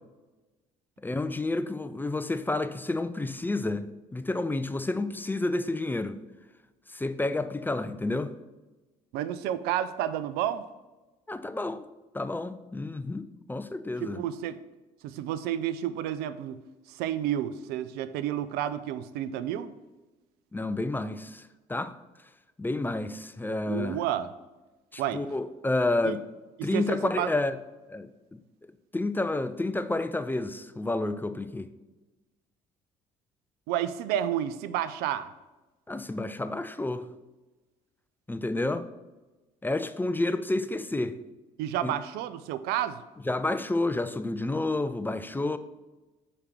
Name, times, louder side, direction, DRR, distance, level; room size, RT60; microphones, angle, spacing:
voice 1, 1.0-3.9 4.1-6.2 6.9-8.3 11.3-11.8 12.1-14.2 20.5-21.9 22.6-24.0 24.9-26.2 26.6-27.6 27.9-28.1 28.9-31.7 35.9-37.0 38.3-38.8 39.6-41.2 41.8-41.9 43.3-45.6, left 2 dB, 10° left, 0.5 m, -30 dB
voice 2, 9.1-10.7 14.0-14.6 15.0-16.6 16.9-19.7 23.7-24.3 25.0-25.2 26.0-26.2 26.6-27.3 33.7-35.3 41.6-43.0, right 11 dB, 75° right, 0.5 m, -30 dB
6.5 x 5.0 x 5.8 m
hypercardioid pair, 65°, 17 cm